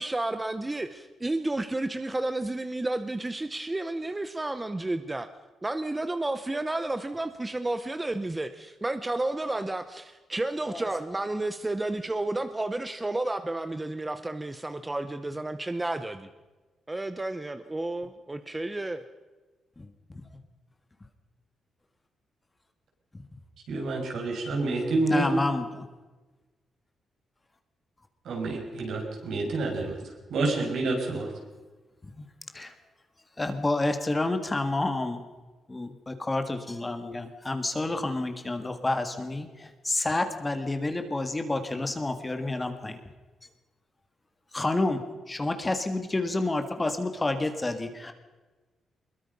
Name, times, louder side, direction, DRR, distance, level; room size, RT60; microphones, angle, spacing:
voice 1, 0.0-5.3 5.6-16.3 16.9-19.0, right 2 dB, 15° right, 10 dB, 0.9 m, -31 dB
voice 2, 23.7-25.3 28.2-29.9 30.3-31.3, right 2 dB, 70° right, 1 dB, 6.4 m, -28 dB
voice 3, 25.1-25.9 32.2-32.3 32.5-32.7 33.4-35.2 35.7-43.0 44.5-45.0 45.3-48.1, left 2 dB, 15° left, 7 dB, 1.7 m, -29 dB
24.0 x 21.5 x 5.4 m, 1.2 s
cardioid pair, 140°, 0 cm